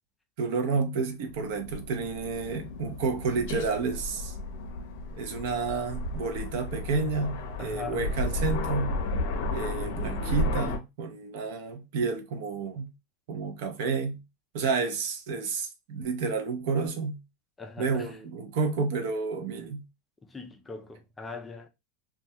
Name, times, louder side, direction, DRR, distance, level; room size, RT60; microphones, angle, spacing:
voice 1, 0.4-4.3 5.2-9.0 9.5-12.9 13.3-14.2 14.5-17.2 17.8-19.8, right 4 dB, 60° right, 0.5 m, -30 dB
Aircraft, 1.2-10.8, left 2 dB, 65° left, 0.5 m, -33 dB
voice 2, 7.6-8.0 17.6-18.2 20.2-21.7, left 3 dB, 10° left, 0.3 m, -41 dB
2.2 x 2.2 x 2.7 m
supercardioid pair, 165°, 0 cm